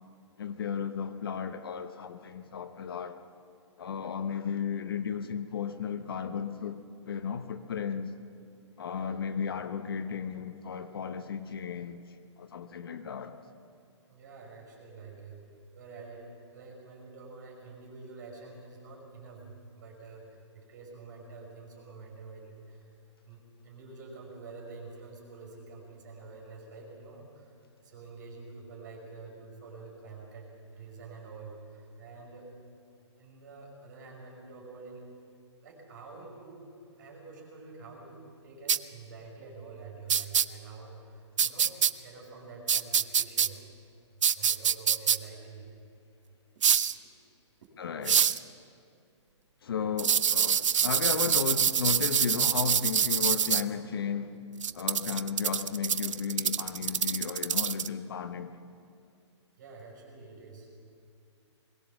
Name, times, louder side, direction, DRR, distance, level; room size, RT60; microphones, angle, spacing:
voice 1, 0.4-3.2 3.8-8.2 8.8-12.0 12.4-13.4 47.8-48.4 49.6-54.4 54.7-58.5, left 6 dB, 50° left, 1.0 m, -34 dB
voice 2, 14.1-15.4 15.7-22.9 23.2-27.5 27.8-32.5 33.2-35.0 35.6-43.6 44.4-45.7 59.6-60.7, right 4 dB, 40° right, 5.3 m, -47 dB
sound 1, 38.7-38.8 40.1-40.4 41.4-41.9 42.7-43.5 44.2-45.2 46.6-46.9 48.1-48.4 50.0-53.6 54.6-57.9, right 8 dB, 85° right, 0.7 m, -25 dB
22.0 x 18.5 x 7.1 m
hypercardioid pair, 180°, 16 cm